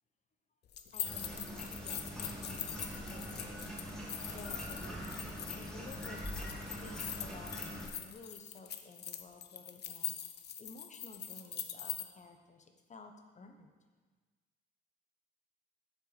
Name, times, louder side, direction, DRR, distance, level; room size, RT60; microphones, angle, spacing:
sound 1, 0.7-12.0, left 9 dB, 55° left, 0.7 m, -42 dB
voice 1, 0.9-3.8 4.3-5.0 5.5-13.7, left 3 dB, 35° left, 5 dB, 1.1 m, -54 dB
sound 2, 1.0-7.9, equal, 5° left, 2.0 m, -43 dB
8.1 x 7.0 x 5.1 m, 1.4 s
cardioid pair, 90°, 20 cm